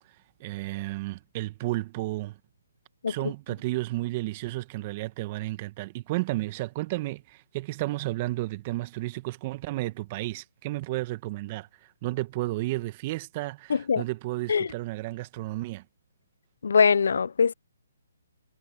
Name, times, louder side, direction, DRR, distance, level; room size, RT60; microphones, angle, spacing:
voice 1, 0.4-2.4 3.1-15.8, right 19 dB, 35° right, 1.5 m, -32 dB
voice 2, 13.7-14.0 14.5-14.7 16.6-17.5, left 6 dB, 70° left, 0.7 m, -22 dB
hypercardioid pair, 145°, 0 cm